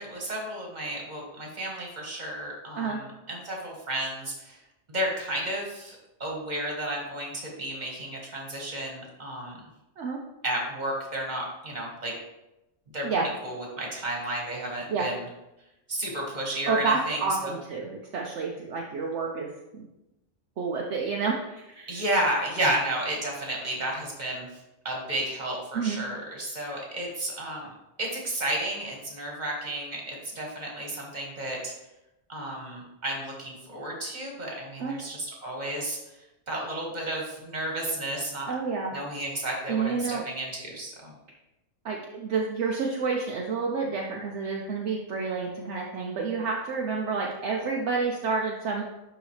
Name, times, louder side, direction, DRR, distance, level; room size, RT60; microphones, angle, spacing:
voice 1, 0.0-4.6 4.9-9.6 10.4-12.1 12.9-13.1 13.4-15.3 15.9-17.5 21.9-24.5 24.9-27.7 28.0-31.7 32.3-36.0 36.5-38.5 38.9-41.1, right 1 dB, 35° right, -1 dB, 1.8 m, -32 dB
voice 2, 16.7-19.9 20.6-22.0 25.7-26.0 34.8-34.9 38.5-38.9 39.7-40.2 41.8-48.8, right 4 dB, 65° right, -1 dB, 1.0 m, -29 dB
11.0 x 4.0 x 3.2 m, 0.95 s
omnidirectional pair, 1.3 m